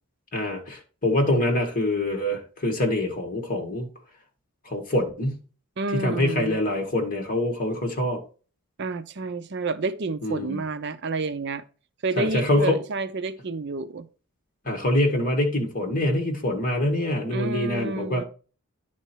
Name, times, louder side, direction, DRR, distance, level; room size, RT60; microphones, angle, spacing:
voice 1, 0.3-3.9 4.7-5.4 5.9-8.2 10.2-10.6 12.2-12.8 14.7-18.3, left 1 dB, 40° left, 1.8 m, -25 dB
voice 2, 5.8-6.6 8.8-11.6 12.0-14.1 17.3-18.2, right 3 dB, 50° right, 0.5 m, -29 dB
10.0 x 4.4 x 4.5 m
head